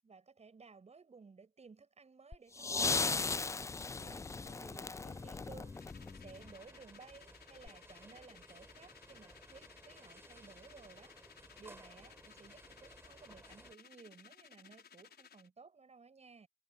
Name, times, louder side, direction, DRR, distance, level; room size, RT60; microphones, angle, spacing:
voice 1, 0.0-3.3 3.9-5.7 6.1-11.1 11.6-16.5, right 4 dB, 35° right, 7.8 m, -57 dB
sound 1, 2.3-6.5 7.7-7.8, left 4 dB, 15° left, 0.3 m, -37 dB
sound 2, 3.4-13.7, right 2 dB, 10° right, 6.0 m, -60 dB
sound 3, 5.7-15.5, left 7 dB, 55° left, 6.5 m, -59 dB
cardioid pair, 90°, 20 cm